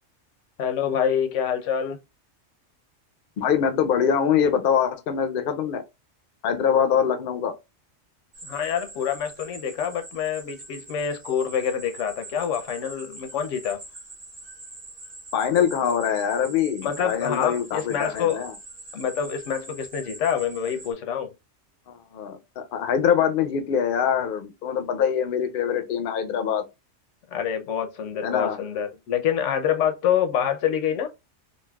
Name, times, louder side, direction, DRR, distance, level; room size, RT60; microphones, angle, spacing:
voice 1, 0.6-2.0 8.4-13.8 16.8-18.4 18.9-21.3 27.3-31.1, left 8 dB, 85° left, 0.9 m, -26 dB
voice 2, 3.4-5.8 6.4-7.5 15.3-18.5 21.9-26.6 28.2-28.6, left 8 dB, 60° left, 0.6 m, -24 dB
sound 1, 8.3-20.9, right 2 dB, 90° right, 1.4 m, -44 dB
3.9 x 2.3 x 2.2 m
omnidirectional pair, 1.2 m